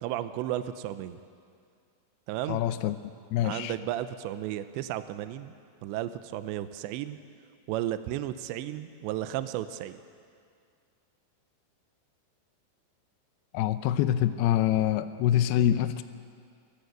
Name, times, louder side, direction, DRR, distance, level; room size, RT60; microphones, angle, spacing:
voice 1, 0.0-1.2 2.3-2.7 3.4-5.5 5.8-7.2 7.7-10.0, right 13 dB, 80° right, 11 dB, 2.9 m, -33 dB
voice 2, 2.5-3.0 3.3-3.7 13.5-16.0, left 11 dB, 90° left, 11 dB, 2.2 m, -25 dB
24.0 x 15.0 x 8.0 m, 2.2 s
omnidirectional pair, 5.4 m